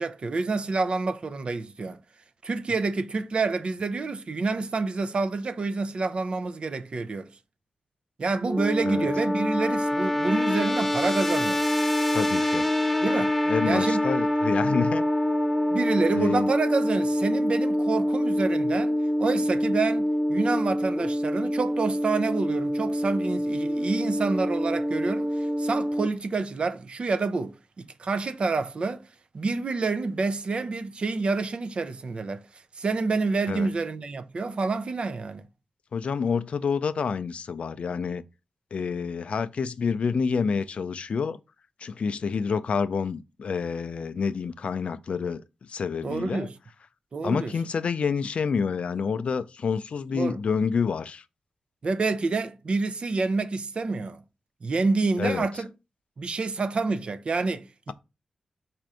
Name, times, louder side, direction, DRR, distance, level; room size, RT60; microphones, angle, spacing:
voice 1, 0.0-2.0 2.4-7.3 8.2-11.6 13.0-13.3 13.6-14.0 15.7-29.0 29.3-32.4 32.8-35.4 46.0-46.5 47.1-47.5 50.1-50.4 51.8-54.2 54.6-55.7 56.2-57.9, right 3 dB, 55° right, 0.4 m, -28 dB
sound 1, 8.4-26.1, equal, 10° left, 0.6 m, -25 dB
voice 2, 12.1-12.7 13.5-15.0 16.1-16.5 33.5-33.7 35.9-38.2 38.7-41.4 41.8-45.4 45.7-46.5 47.2-51.2 55.2-55.5, left 5 dB, 70° left, 0.3 m, -28 dB
4.3 x 2.5 x 4.7 m
cardioid pair, 75°, 2 cm